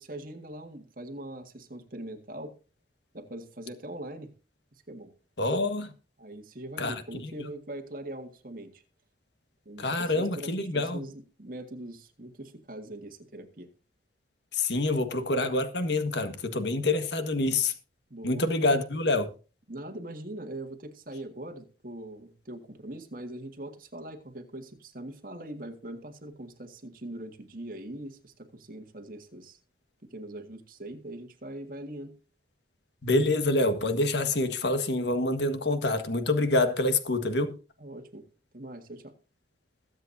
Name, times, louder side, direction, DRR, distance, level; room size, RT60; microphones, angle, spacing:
voice 1, 0.0-2.5 3.1-4.3 4.9-5.1 6.2-8.8 9.7-13.7 18.1-18.5 19.7-29.6 30.1-32.1 37.8-38.3 38.5-39.1, right 1 dB, 50° right, 1.8 m, -42 dB
voice 2, 5.4-5.9 6.8-6.9 9.8-11.0 14.5-17.7 18.2-19.3 33.0-37.5, left 2 dB, 75° left, 1.6 m, -26 dB
21.5 x 8.1 x 2.7 m
head